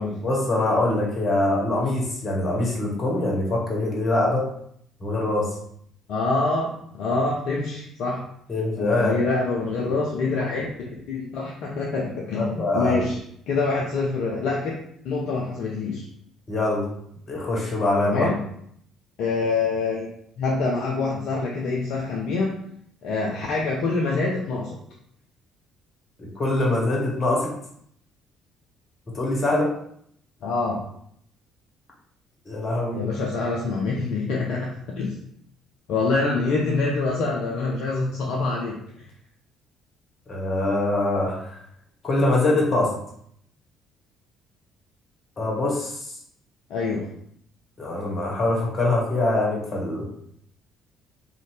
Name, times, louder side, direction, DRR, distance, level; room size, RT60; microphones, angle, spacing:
voice 1, 0.2-4.4 5.0-5.6 8.5-9.1 9.8-9.9 12.3-13.1 16.5-16.9 17.3-18.3 26.2-27.5 29.1-29.7 32.5-33.0 40.3-41.5 42.0-43.0 45.4-46.2 47.8-50.1, left 2 dB, 35° left, -2 dB, 0.8 m, -23 dB
voice 2, 6.1-8.2 8.8-10.7 11.1-13.2 13.5-14.7 15.0-16.1 18.0-18.4 19.2-20.1 20.4-22.6 23.0-24.8 30.4-30.8 32.9-34.7 35.0-35.2 35.9-39.1 46.7-47.1, left 3 dB, 55° left, -2 dB, 0.3 m, -25 dB
2.6 x 2.0 x 3.1 m, 0.69 s
figure-of-eight pair, 50°, 0 cm